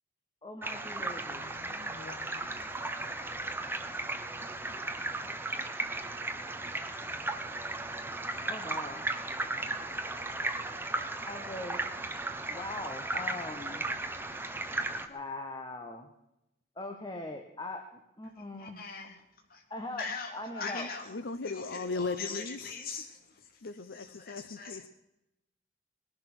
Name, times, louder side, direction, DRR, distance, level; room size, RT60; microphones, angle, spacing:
voice 1, 0.4-1.6 8.4-9.0 11.3-11.8 12.5-13.9 15.1-16.1 16.8-17.8 18.2-18.8 19.7-20.1 20.3-20.9, left 2 dB, 25° left, 5 dB, 1.4 m, -41 dB
sound 1, 0.6-15.1, right 2 dB, 10° right, 1.2 m, -36 dB
voice 2, 1.3-3.1 20.6-22.7 23.6-24.9, left 3 dB, 70° left, 12 dB, 0.7 m, -39 dB
voice 3, 18.6-19.2 19.5-19.6 20.0-21.2 21.4-23.3 23.9-24.9, left 5 dB, 50° left, 2 dB, 2.5 m, -41 dB
20.5 x 11.5 x 6.2 m, 0.88 s
head